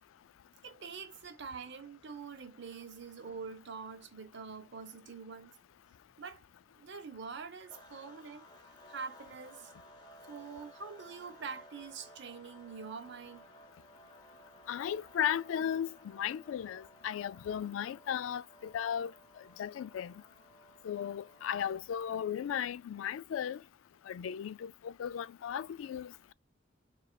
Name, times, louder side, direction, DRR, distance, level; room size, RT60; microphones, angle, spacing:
voice 1, 0.6-5.6 6.2-6.4 6.8-8.5 8.9-9.7 10.3-13.5, right 5 dB, 65° right, 0.8 m, -45 dB
sound 1, 7.7-21.9, equal, 20° left, 0.9 m, -57 dB
voice 2, 14.7-19.1 19.6-20.1 20.8-23.6 24.1-26.3, left 9 dB, 85° left, 0.3 m, -36 dB
4.1 x 3.1 x 2.3 m
head